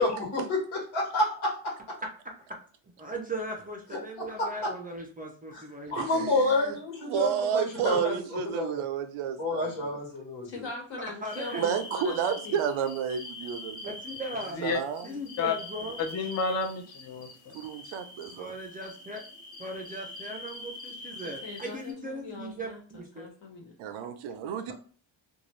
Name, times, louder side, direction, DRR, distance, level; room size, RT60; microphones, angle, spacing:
voice 1, 0.0-1.7 3.9-4.7 5.5-5.6 5.9-8.1 8.5-8.8 9.4-10.6, left 2 dB, 85° left, -1 dB, 1.4 m, -29 dB
voice 2, 3.0-6.3 11.2-11.6 13.8-14.6 15.0-16.0 18.4-19.2 19.6-23.3, right 1 dB, 20° right, 2 dB, 0.4 m, -38 dB
voice 3, 6.0-6.8 7.1-10.0 11.5-13.9 14.6-15.1 17.5-18.5 23.8-24.7, right 7 dB, 80° right, 8 dB, 0.6 m, -31 dB
voice 4, 10.4-12.6 15.1-15.2 21.4-23.7, left 3 dB, 65° left, 0 dB, 1.2 m, -41 dB
sound 1, 11.2-21.9, left 2 dB, 15° left, 0.9 m, -44 dB
voice 5, 16.0-17.6, left 4 dB, 35° left, 5 dB, 0.5 m, -30 dB
2.6 x 2.3 x 3.1 m, 0.42 s
cardioid pair, 120°, 48 cm